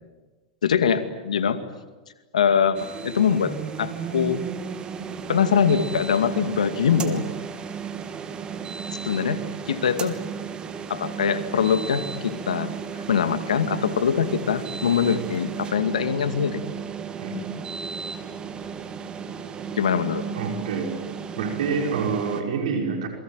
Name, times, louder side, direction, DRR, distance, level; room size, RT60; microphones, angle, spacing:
voice 1, 0.6-1.6 2.3-4.4 5.3-7.2 9.0-10.2 10.9-16.6 19.8-20.2, left 7 dB, 80° left, 10 dB, 2.3 m, -23 dB
sound 1, 2.7-22.4, right 6 dB, 25° right, 2.9 m, -34 dB
voice 2, 20.3-21.0 21.3-23.1, right 5 dB, 65° right, 3 dB, 5.4 m, -27 dB
28.0 x 23.0 x 9.2 m, 1.2 s
hypercardioid pair, 105°, 4 cm